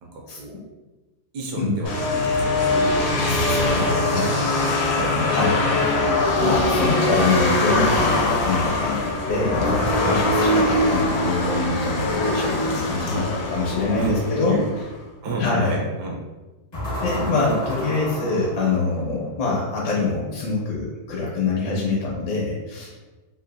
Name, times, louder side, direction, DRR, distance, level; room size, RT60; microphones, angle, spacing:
voice 1, 0.0-0.6 1.3-3.9 4.6-5.8 6.8-6.9 10.5-10.6 13.1-13.2 14.0-14.2 14.4-14.6 15.2-16.2, right 2 dB, 75° right, -1 dB, 1.1 m, -31 dB
sound 1, 1.9-14.9, left 2 dB, 90° left, 1.4 m, -22 dB
voice 2, 3.0-4.6 5.3-5.6 6.4-14.6 15.4-15.8 17.0-23.0, left 3 dB, 65° left, -4 dB, 1.4 m, -25 dB
sound 2, 3.6-5.9 9.5-12.0 16.7-19.3, equal, 40° left, 0.6 m, -32 dB
3.4 x 2.5 x 2.5 m, 1.2 s
omnidirectional pair, 2.0 m